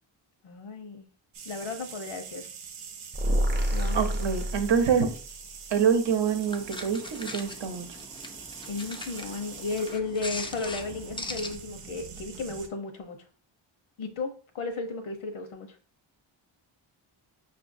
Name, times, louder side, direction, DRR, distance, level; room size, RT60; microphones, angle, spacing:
voice 1, 0.4-1.1 1.4-2.5 3.7-4.1 8.7-13.2 14.0-15.8, left 3 dB, 75° left, 6 dB, 1.0 m, -34 dB
sound 1, 1.3-12.7, right 6 dB, 90° right, 0.8 m, -44 dB
sound 2, 3.1-5.3, equal, 20° right, 0.7 m, -27 dB
voice 2, 3.9-5.1 5.7-7.9, right 7 dB, 60° right, 7 dB, 0.8 m, -25 dB
sound 3, 6.1-11.6, left 2 dB, 10° left, 0.4 m, -41 dB
5.4 x 2.6 x 2.6 m, 0.41 s
cardioid pair, 80°, 49 cm